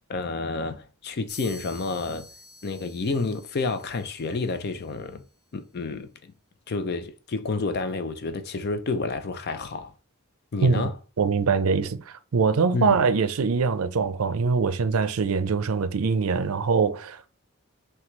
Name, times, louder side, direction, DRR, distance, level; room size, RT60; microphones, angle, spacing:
voice 1, 0.1-2.3 2.6-5.2 5.5-6.3 6.7-9.9 10.5-10.9 12.7-13.0, left 3 dB, 50° left, 0.5 m, -29 dB
sound 1, 1.3-5.0, left 2 dB, ahead, 1.6 m, -48 dB
voice 2, 11.2-17.3, right 5 dB, 75° right, 0.5 m, -23 dB
5.8 x 2.3 x 3.0 m
head